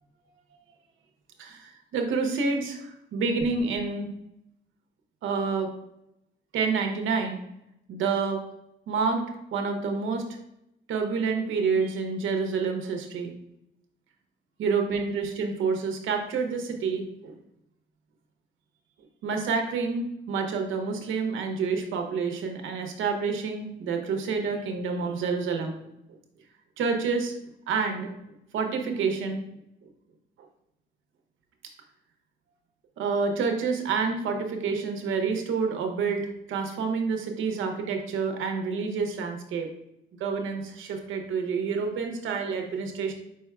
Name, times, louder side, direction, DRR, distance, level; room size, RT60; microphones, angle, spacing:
voice 1, 1.4-4.1 5.2-5.7 6.5-7.4 7.9-8.4 8.9-9.2 9.5-10.3 10.9-13.3 14.6-17.3 19.2-25.8 26.8-27.3 27.7-28.1 28.5-29.4 33.0-39.7 40.2-43.1, right 5 dB, 80° right, 4 dB, 0.8 m, -28 dB
4.9 x 4.6 x 2.3 m, 0.83 s
cardioid pair, 90°, 20 cm